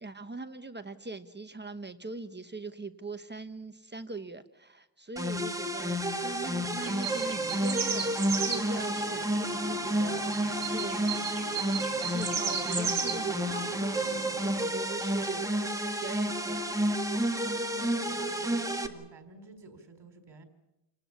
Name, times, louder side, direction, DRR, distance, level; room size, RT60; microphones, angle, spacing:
voice 1, 0.0-8.1 8.4-11.4 12.0-15.6 16.0-16.7, right 3 dB, 25° right, 9 dB, 1.1 m, -41 dB
sound 1, 5.2-18.9, right 1 dB, 10° right, 1.7 m, -30 dB
sound 2, 6.8-14.7, right 6 dB, 50° right, 4.2 m, -36 dB
voice 2, 17.5-20.4, right 2 dB, 70° right, 7 dB, 4.5 m, -50 dB
28.5 x 19.5 x 7.2 m, 0.89 s
wide cardioid pair, 150°, 43 cm